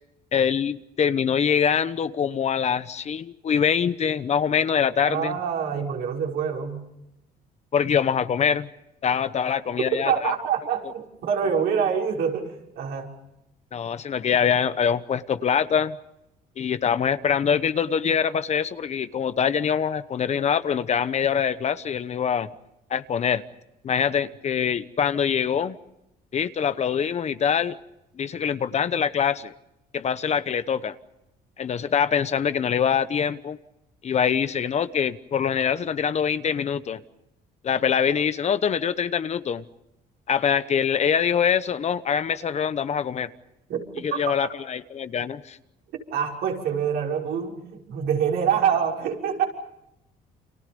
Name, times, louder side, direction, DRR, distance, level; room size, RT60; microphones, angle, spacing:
voice 1, 0.3-5.4 7.7-8.7 9.0-10.3 13.7-16.0 16.6-22.5 22.9-23.4 23.8-25.8 26.3-27.8 28.2-29.5 29.9-31.0 31.6-33.6 34.0-37.0 37.6-39.6 40.3-43.3 44.0-45.6, left 7 dB, 40° left, 13 dB, 1.0 m, -24 dB
voice 2, 5.1-6.8 10.0-13.1 43.7-43.8 44.1-44.3 46.1-49.5, right 7 dB, 75° right, -1 dB, 5.9 m, -26 dB
29.5 x 26.5 x 5.3 m, 0.87 s
cardioid pair, 110°, 17 cm